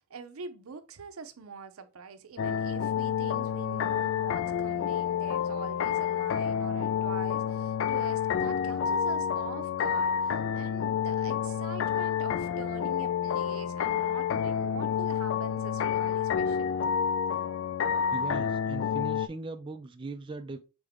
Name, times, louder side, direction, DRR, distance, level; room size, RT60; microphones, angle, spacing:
voice 1, 0.0-16.8, right 5 dB, 85° right, 0.6 m, -43 dB
sound 1, 2.4-19.3, left 8 dB, 60° left, 0.3 m, -29 dB
voice 2, 18.1-20.6, right 3 dB, 25° right, 0.3 m, -39 dB
3.9 x 3.5 x 3.5 m
head